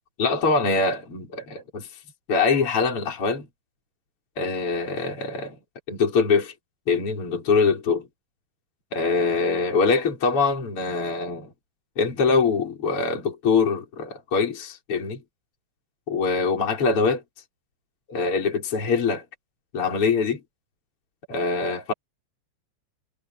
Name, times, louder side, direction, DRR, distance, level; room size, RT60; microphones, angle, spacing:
voice 1, 0.2-1.9 2.3-3.5 4.4-5.6 5.9-6.5 6.9-8.1 8.9-11.5 12.0-15.2 16.1-17.2 18.1-19.2 19.7-20.4 21.3-21.9, left 4 dB, 25° left, 6.0 m, -23 dB
omnidirectional pair, 6.0 m